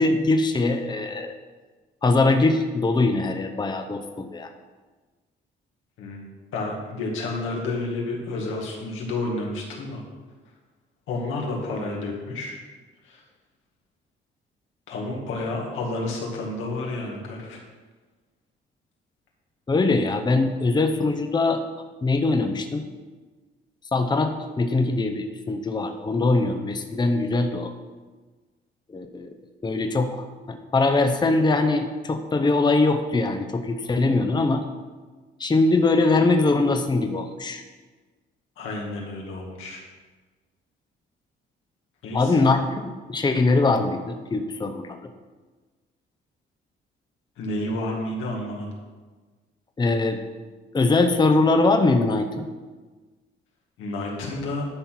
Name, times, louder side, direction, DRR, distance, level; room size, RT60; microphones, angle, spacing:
voice 1, 0.0-1.3 2.0-4.5 19.7-21.6 22.0-22.8 23.9-27.7 28.9-29.3 29.6-34.6 35.4-37.6 42.1-45.1 49.8-50.2 50.7-52.5, left 3 dB, 20° left, 6 dB, 0.8 m, -22 dB
voice 2, 6.0-10.0 11.1-12.6 13.0-13.2 14.9-17.6 38.6-39.8 42.0-42.3 47.4-48.7 53.8-54.6, left 2 dB, 90° left, -1 dB, 2.0 m, -30 dB
11.0 x 4.4 x 5.8 m, 1.3 s
cardioid pair, 90°, 20 cm